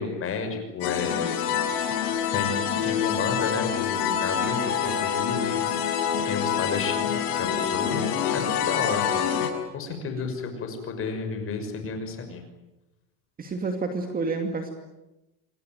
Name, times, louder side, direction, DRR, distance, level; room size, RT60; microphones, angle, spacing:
voice 1, 0.0-1.4 2.3-5.7 6.3-9.3 9.7-12.4, left 5 dB, 25° left, 6 dB, 6.1 m, -31 dB
sound 1, 0.8-9.5, left 8 dB, 75° left, 6.8 m, -26 dB
voice 2, 13.4-14.7, right 3 dB, 20° right, 4 dB, 2.5 m, -29 dB
28.0 x 22.0 x 9.3 m, 0.98 s
supercardioid pair, 160°, 47 cm